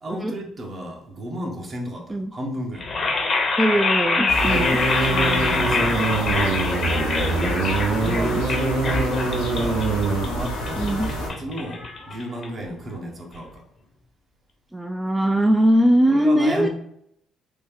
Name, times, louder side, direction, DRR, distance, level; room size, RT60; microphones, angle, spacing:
voice 1, 0.0-2.9 4.5-4.7 5.0-6.5 7.9-9.9 10.2-13.6 16.1-16.7, right 1 dB, 45° right, 1 dB, 0.9 m, -33 dB
sound 1, 2.8-12.8, left 3 dB, 45° left, 0.7 m, -25 dB
voice 2, 3.6-4.8 7.3-7.5 8.1-8.4 10.7-11.1 14.7-16.7, equal, 10° right, 4 dB, 0.3 m, -21 dB
sound 2, 4.3-11.3, right 1 dB, 90° left, 0.7 m, -29 dB
sound 3, 4.4-10.3, right 3 dB, 85° right, 0.6 m, -24 dB
3.2 x 2.2 x 3.5 m, 0.72 s
hypercardioid pair, 55°, 0 cm